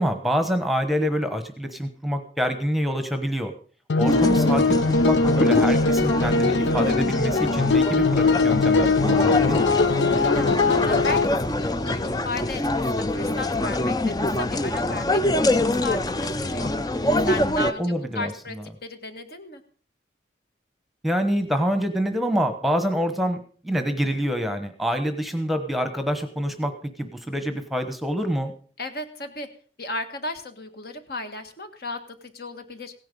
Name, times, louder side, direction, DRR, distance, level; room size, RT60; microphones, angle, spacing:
voice 1, 0.0-3.5 4.0-9.6 17.8-18.6 21.0-28.5, equal, ahead, 8 dB, 1.1 m, -26 dB
sound 1, 3.9-11.3, left 3 dB, 75° left, 0.6 m, -21 dB
sound 2, 4.1-17.7, left 1 dB, 20° left, 0.5 m, -25 dB
voice 2, 10.0-16.7 17.3-18.6 18.8-19.6 28.8-29.5 29.8-32.9, left 2 dB, 55° left, 7 dB, 1.7 m, -35 dB
16.5 x 10.0 x 5.3 m, 0.43 s
head